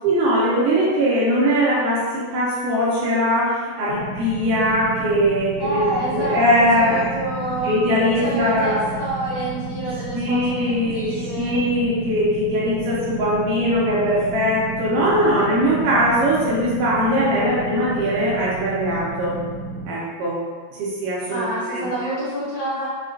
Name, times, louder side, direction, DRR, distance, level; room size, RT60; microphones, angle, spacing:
voice 1, 0.0-7.1 7.6-8.8 10.1-19.4 19.9-20.4 20.8-21.9, equal, 75° right, -8 dB, 2.2 m, -21 dB
sound 1, 3.9-19.9, right 2 dB, 80° left, 1.6 m, -33 dB
voice 2, 5.6-7.8 8.2-11.6 21.3-22.9, right 1 dB, 60° left, -10 dB, 2.2 m, -28 dB
5.7 x 2.3 x 2.5 m, 1.5 s
omnidirectional pair, 4.2 m